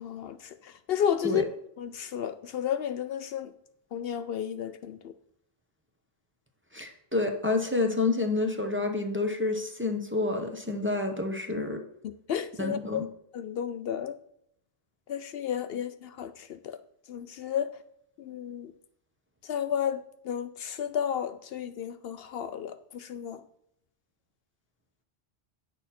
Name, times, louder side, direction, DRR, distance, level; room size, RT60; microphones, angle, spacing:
voice 1, 0.0-1.4 1.8-3.5 3.9-5.1 11.5-11.7 12.0-13.0 13.3-14.2 15.1-16.8 17.1-17.7 18.2-18.7 19.5-23.4, left 9 dB, 70° left, 0.8 m, -32 dB
voice 2, 6.7-11.8 12.6-13.0, left 3 dB, 10° right, 0.9 m, -29 dB
9.6 x 6.3 x 4.2 m
omnidirectional pair, 1.1 m